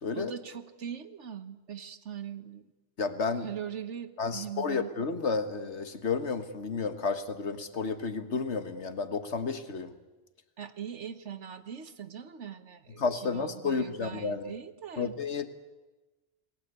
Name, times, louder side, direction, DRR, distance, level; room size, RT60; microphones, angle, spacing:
voice 1, 0.1-2.7 3.4-4.9 10.6-15.1, right 8 dB, 85° right, 11 dB, 1.5 m, -41 dB
voice 2, 3.0-3.5 4.2-9.9 13.0-14.5 15.0-15.5, left 4 dB, 75° left, 9 dB, 1.8 m, -31 dB
28.0 x 20.0 x 8.3 m, 1.2 s
omnidirectional pair, 1.2 m